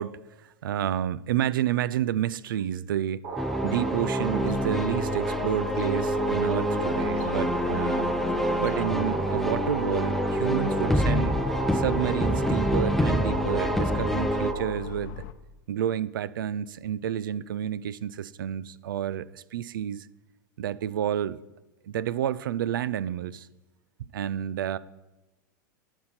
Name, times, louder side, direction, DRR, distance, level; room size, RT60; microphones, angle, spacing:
voice 1, 0.0-3.3 3.6-8.1 8.6-11.4 11.7-15.2 15.7-20.1 20.6-21.4 21.8-23.5 24.1-24.8, right 10 dB, 90° right, 0.4 m, -30 dB
sound 1, 3.2-14.7, right 2 dB, 55° right, 3.1 m, -33 dB
sound 2, 3.4-14.5, equal, ahead, 0.4 m, -27 dB
sound 3, 4.4-15.3, left 12 dB, 60° left, 0.7 m, -39 dB
12.0 x 6.0 x 4.3 m
hypercardioid pair, 115°, 11 cm